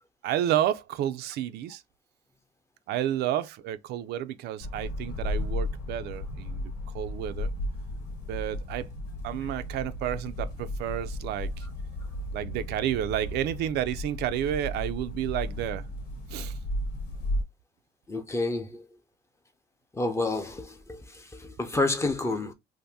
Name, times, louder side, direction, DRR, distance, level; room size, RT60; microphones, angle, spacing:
voice 1, 0.2-1.8 2.9-7.5 8.3-8.9 9.2-11.7 12.3-15.9 16.3-16.6, right 11 dB, 75° right, 0.4 m, -31 dB
sound 1, 4.6-17.4, left 1 dB, 85° left, 1.3 m, -34 dB
voice 2, 18.1-18.9 19.9-22.5, left 2 dB, 15° left, 0.6 m, -29 dB
2.7 x 2.6 x 3.4 m
cardioid pair, 110°, 17 cm